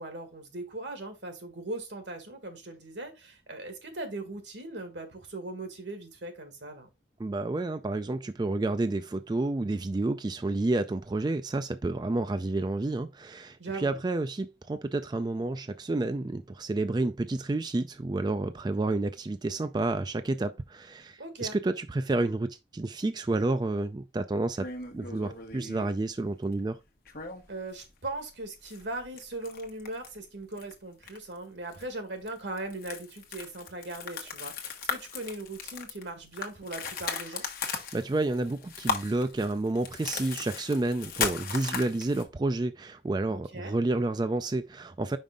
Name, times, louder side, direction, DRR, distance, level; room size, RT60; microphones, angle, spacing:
voice 1, 0.0-6.9 13.6-14.0 21.2-21.6 27.5-37.5 43.3-43.7, right 2 dB, 85° right, 1.9 m, -39 dB
voice 2, 7.2-26.8 37.9-45.2, right 2 dB, 25° right, 0.3 m, -30 dB
sound 1, 24.6-25.9 27.1-27.8 28.1-28.2 28.6-30.2 30.5-30.7 31.0-31.4 31.7-31.8 32.3-42.2, left 5 dB, 55° left, 1.2 m, -37 dB
5.4 x 5.1 x 3.6 m
head